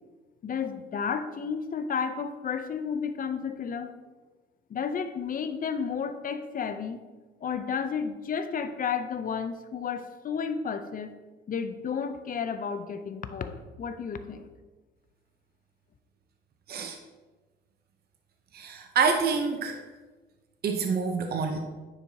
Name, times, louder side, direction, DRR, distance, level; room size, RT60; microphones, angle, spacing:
voice 1, 0.4-3.9 4.7-7.0 7.4-11.1 11.5-14.5, left 6 dB, 45° left, 10 dB, 0.6 m, -32 dB
voice 2, 16.7-17.0 18.5-19.8 20.6-21.6, right 5 dB, 50° right, 4 dB, 0.7 m, -27 dB
9.8 x 4.5 x 2.8 m, 1.3 s
cardioid pair, 90°, 20 cm